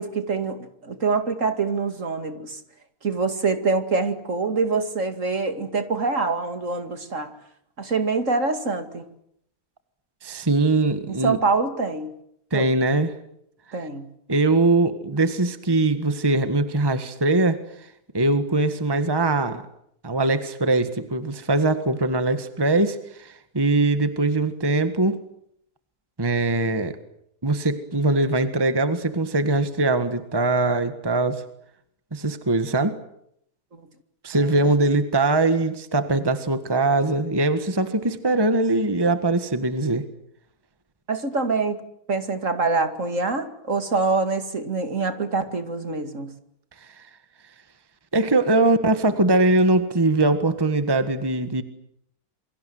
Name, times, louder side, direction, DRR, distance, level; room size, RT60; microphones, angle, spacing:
voice 1, 0.0-2.6 3.0-7.3 7.8-9.1 11.2-12.2 12.5-12.7 13.7-14.1 34.4-34.5 41.1-41.8 42.1-46.3, right 4 dB, 50° right, 9 dB, 2.7 m, -25 dB
voice 2, 10.2-11.4 12.5-13.2 13.8-13.9 14.3-17.6 18.1-19.6 20.0-25.2 26.2-27.0 27.4-31.4 32.1-33.0 34.2-40.1 47.0-47.1 48.1-51.6, right 2 dB, 15° right, 10 dB, 1.6 m, -21 dB
28.0 x 24.5 x 7.9 m, 0.72 s
omnidirectional pair, 1.7 m